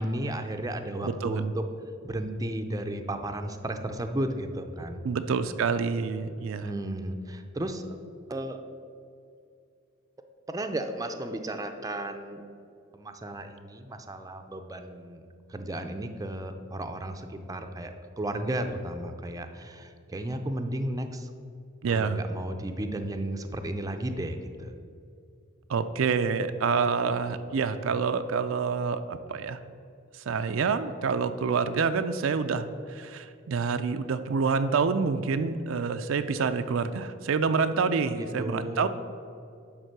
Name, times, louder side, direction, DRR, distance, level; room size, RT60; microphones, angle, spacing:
voice 1, 0.0-1.6 2.0-5.0 6.6-7.9 8.3-8.6 10.5-12.4 12.9-15.2 15.5-21.3 21.9-24.7 38.1-38.9, right 1 dB, 15° right, 6 dB, 0.5 m, -34 dB
voice 2, 1.0-1.5 5.0-6.7 21.8-22.2 25.7-29.6 30.3-38.9, right 5 dB, 70° right, 10 dB, 0.4 m, -27 dB
11.0 x 3.7 x 6.6 m, 2.4 s
head